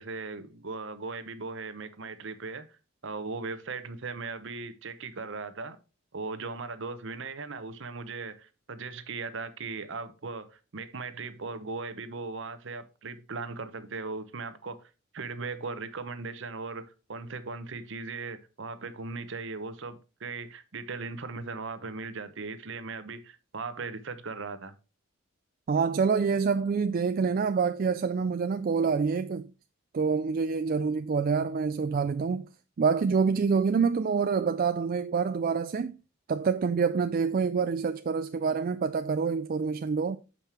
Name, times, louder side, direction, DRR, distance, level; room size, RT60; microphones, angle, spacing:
voice 1, 0.0-2.7 3.0-5.8 6.1-24.7, right 4 dB, 60° right, 0.8 m, -38 dB
voice 2, 25.7-29.5 29.9-32.4 32.8-36.0 36.3-40.2, right 5 dB, 45° right, 0.3 m, -26 dB
7.3 x 5.3 x 4.4 m
head